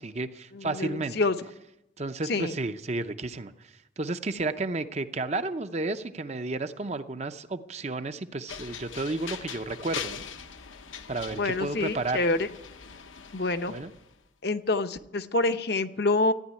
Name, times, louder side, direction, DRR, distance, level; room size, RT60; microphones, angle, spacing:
voice 1, 0.0-1.2 2.0-10.2 11.1-12.2 13.7-13.9, right 2 dB, 35° right, 9 dB, 0.6 m, -32 dB
voice 2, 0.5-1.3 2.3-2.5 11.4-12.5 13.3-13.7 14.4-16.3, left 2 dB, 55° left, 9 dB, 0.8 m, -27 dB
sound 1, 8.5-14.1, left 7 dB, 80° left, 1.0 m, -41 dB
14.5 x 9.9 x 9.6 m, 0.86 s
head